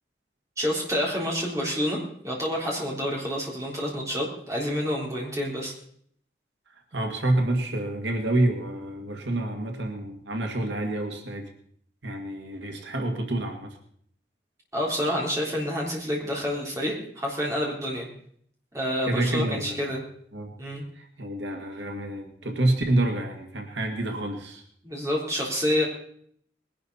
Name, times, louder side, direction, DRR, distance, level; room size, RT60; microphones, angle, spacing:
voice 1, 0.6-5.7 14.7-18.1 18.7-20.0 20.6-20.8 24.8-25.8, equal, 15° right, -3 dB, 3.8 m, -28 dB
voice 2, 6.9-11.5 12.0-13.7 19.0-19.8 20.3-20.5 21.2-24.6, right 1 dB, 90° right, 3 dB, 1.9 m, -28 dB
20.5 x 11.5 x 4.2 m, 0.64 s
head